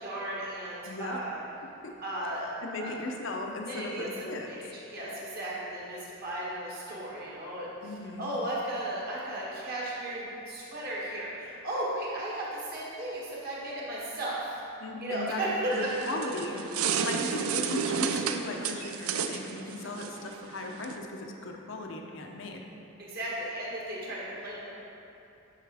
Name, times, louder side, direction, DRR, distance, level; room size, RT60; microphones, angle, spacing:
voice 1, 0.0-1.4 2.0-2.5 2.8-2.9 3.6-4.1 4.4-7.7 8.2-14.5 15.0-15.9 23.0-24.7, right 1 dB, 45° right, -6 dB, 1.6 m, -35 dB
voice 2, 0.9-1.2 1.8-1.9 2.6-4.5 7.8-8.3 14.8-16.6 17.0-22.7, left 2 dB, 60° left, 2 dB, 0.7 m, -37 dB
sound 1, 15.7-21.0, right 7 dB, 85° right, 0.4 m, -32 dB
9.1 x 5.6 x 3.4 m, 2.8 s
head